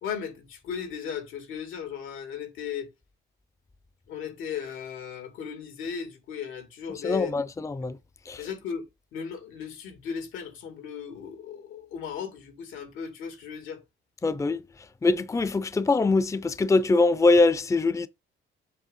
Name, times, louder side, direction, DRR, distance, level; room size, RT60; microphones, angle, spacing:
voice 1, 0.0-2.9 4.1-7.5 8.4-8.9 9.1-13.8, left 7 dB, 90° left, 2.3 m, -36 dB
voice 2, 7.0-8.0 8.3-8.4 14.2-14.6 15.0-18.1, left 3 dB, 15° left, 0.5 m, -23 dB
7.6 x 3.1 x 5.5 m
cardioid pair, 90°, 20 cm